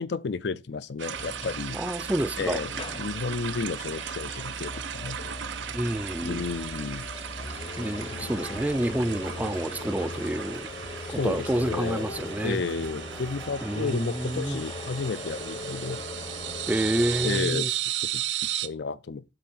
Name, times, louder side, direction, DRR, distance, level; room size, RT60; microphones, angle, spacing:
voice 1, 0.0-1.8 2.4-5.3 6.2-7.1 11.0-12.1 12.4-16.0 17.2-17.8 18.1-18.2 18.6-19.2, left 4 dB, 60° left, 0.4 m, -32 dB
sound 1, 1.0-18.7, right 11 dB, 70° right, 0.5 m, -36 dB
sound 2, 1.1-17.4, left 2 dB, 30° left, 0.7 m, -39 dB
voice 2, 1.7-2.6 5.7-6.4 7.8-10.7 11.2-12.6 13.6-14.6 16.7-17.7, right 1 dB, 10° right, 0.4 m, -28 dB
sound 3, 8.5-13.5, right 4 dB, 90° right, 0.9 m, -50 dB
7.9 x 3.8 x 6.0 m
head